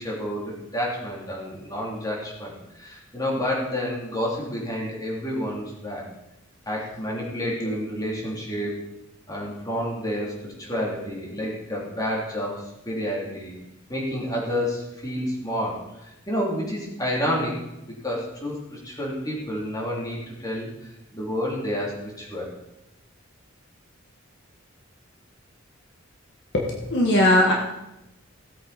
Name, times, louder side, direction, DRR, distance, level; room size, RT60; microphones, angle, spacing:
voice 1, 0.0-6.1 6.6-8.8 9.3-13.5 13.9-17.6 17.9-22.5, equal, 20° left, -4 dB, 3.3 m, -29 dB
voice 2, 26.5-27.5, left 1 dB, 60° left, -1 dB, 1.7 m, -19 dB
17.5 x 8.4 x 4.3 m, 0.92 s
head